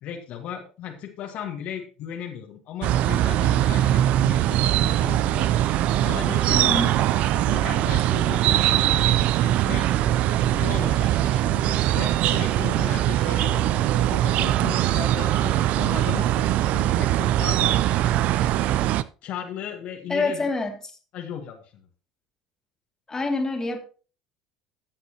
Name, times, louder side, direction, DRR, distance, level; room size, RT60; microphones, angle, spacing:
voice 1, 0.0-5.7 6.0-9.9 10.5-17.9 18.2-18.5 19.2-20.4 21.1-21.9, left 9 dB, 55° left, 1.6 m, -36 dB
sound 1, 2.8-19.0, right 13 dB, 55° right, 0.5 m, -21 dB
voice 2, 6.5-7.0 20.1-20.8 23.1-23.8, left 3 dB, 20° left, 2.4 m, -26 dB
15.0 x 7.8 x 3.0 m
figure-of-eight pair, 65°, 3 cm